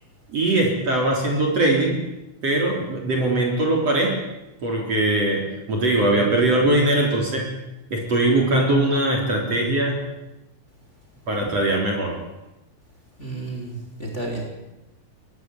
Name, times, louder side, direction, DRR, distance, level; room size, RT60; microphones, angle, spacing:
voice 1, 0.3-2.0 2.4-4.2 4.6-7.6 7.9-10.0 11.3-12.2, right 2 dB, 40° right, 0 dB, 4.5 m, -21 dB
voice 2, 13.2-14.4, right 2 dB, 15° left, 2 dB, 4.8 m, -31 dB
23.0 x 18.0 x 9.1 m, 0.98 s
omnidirectional pair, 4.6 m